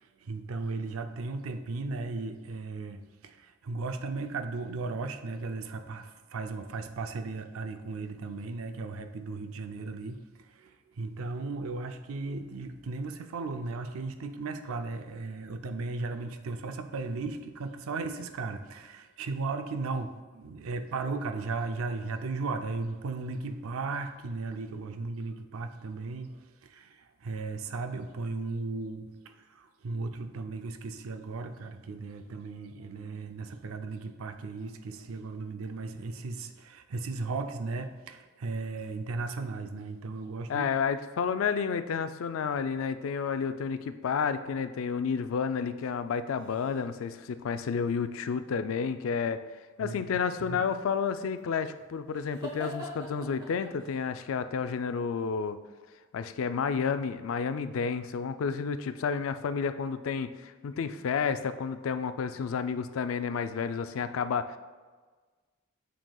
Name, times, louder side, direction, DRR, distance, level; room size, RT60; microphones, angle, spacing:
voice 1, 0.0-10.2 10.5-40.7 49.8-50.6, right 3 dB, 90° right, 8 dB, 0.5 m, -36 dB
voice 2, 40.5-49.4 49.8-55.6 56.1-64.6, left 6 dB, 80° left, 11 dB, 0.4 m, -31 dB
sound 1, 46.1-47.1 50.8-54.0, equal, 20° right, 1.3 m, -44 dB
6.9 x 6.1 x 2.3 m, 1.4 s
head